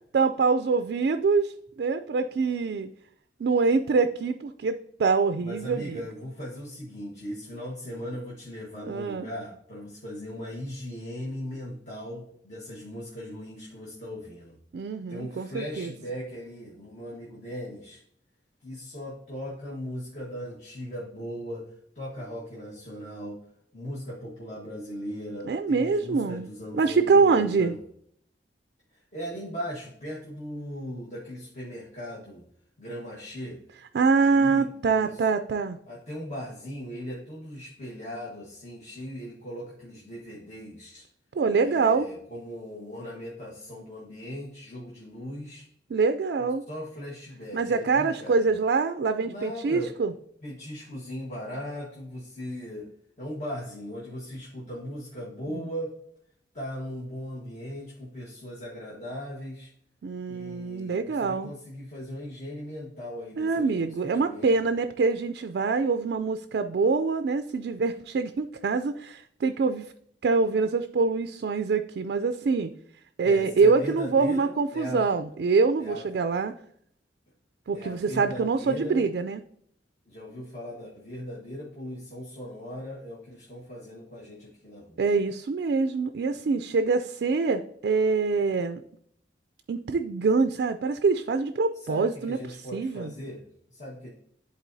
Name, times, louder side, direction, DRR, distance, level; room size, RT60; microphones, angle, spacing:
voice 1, 0.1-2.9 3.4-6.0 8.9-9.3 14.7-15.9 25.5-26.5 26.7-27.7 33.9-35.8 41.3-42.1 45.9-46.6 47.5-50.1 55.5-55.6 60.0-61.5 63.4-69.9 70.2-72.7 73.2-76.5 77.7-79.4 85.0-88.8 89.7-92.4 92.7-93.1, right 4 dB, 60° right, 8 dB, 0.3 m, -25 dB
voice 2, 5.4-14.6 15.1-18.0 18.6-21.7 21.9-23.4 23.7-27.8 28.9-32.5 32.8-33.6 34.1-35.2 35.9-41.0 41.6-45.6 46.7-48.5 49.3-49.9 50.4-52.9 53.2-56.0 56.5-59.7 60.3-64.7 73.2-75.1 75.8-76.1 77.7-79.1 80.1-85.0 91.8-94.1, equal, 40° left, -5 dB, 1.3 m, -38 dB
11.0 x 4.1 x 2.6 m, 0.67 s
head